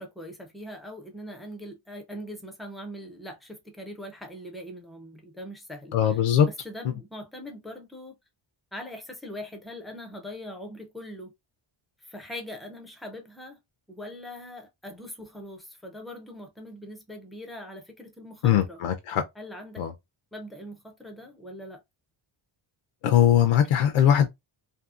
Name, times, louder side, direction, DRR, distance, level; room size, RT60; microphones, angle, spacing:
voice 1, 0.0-6.2 6.6-8.2 8.7-11.3 12.0-13.6 13.9-18.8 19.4-19.8 20.3-21.8, left 1 dB, ahead, 0.3 m, -41 dB
voice 2, 5.9-6.5 18.4-19.2 19.8-19.9 23.0-24.3, left 10 dB, 90° left, 0.6 m, -20 dB
2.7 x 2.6 x 2.3 m
wide cardioid pair, 170°, 49 cm